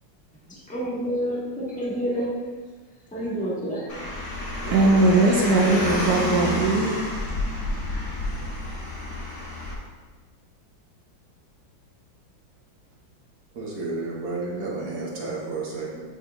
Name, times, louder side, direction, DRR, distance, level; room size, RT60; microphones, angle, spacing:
voice 1, 0.5-2.3 3.1-3.9, equal, 5° left, -7 dB, 1.5 m, -28 dB
Car, 3.9-9.7, left 2 dB, 50° left, 1.9 m, -30 dB
voice 2, 4.6-7.0, right 2 dB, 65° right, -1 dB, 1.0 m, -19 dB
voice 3, 13.5-16.0, right 3 dB, 50° right, -3 dB, 1.3 m, -31 dB
9.7 x 4.0 x 3.0 m, 1.4 s
omnidirectional pair, 2.1 m